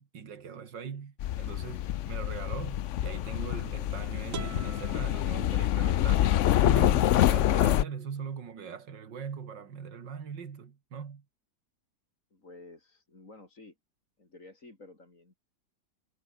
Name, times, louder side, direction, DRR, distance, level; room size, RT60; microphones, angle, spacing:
voice 1, 0.0-11.2, right 6 dB, 75° right, 2.7 m, -41 dB
sound 1, 1.2-7.8, left 12 dB, 75° left, 0.6 m, -26 dB
sound 2, 4.3-6.2, right 9 dB, 55° right, 1.1 m, -44 dB
voice 2, 12.3-13.7 14.2-15.3, left 2 dB, 45° left, 4.6 m, -52 dB
omnidirectional pair, 2.0 m